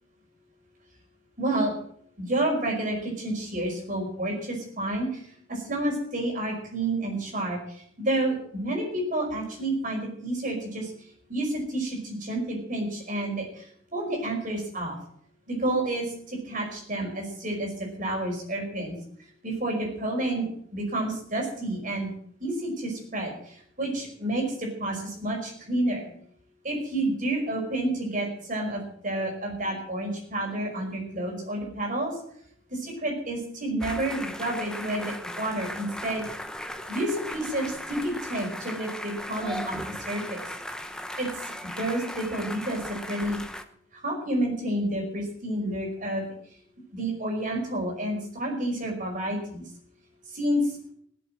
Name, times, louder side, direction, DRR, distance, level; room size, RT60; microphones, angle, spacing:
voice 1, 1.4-1.7 2.2-10.9 11.3-15.0 15.5-19.0 19.4-22.1 22.4-26.0 26.6-32.2 32.7-36.2 36.9-39.8 40.1-40.5 41.2-43.4 43.9-46.3 46.9-49.6 50.3-50.8, right 1 dB, 40° right, 0 dB, 5.2 m, -30 dB
sound 1, 33.8-43.6, left 1 dB, 5° left, 0.9 m, -37 dB
17.5 x 7.9 x 7.6 m, 0.66 s
head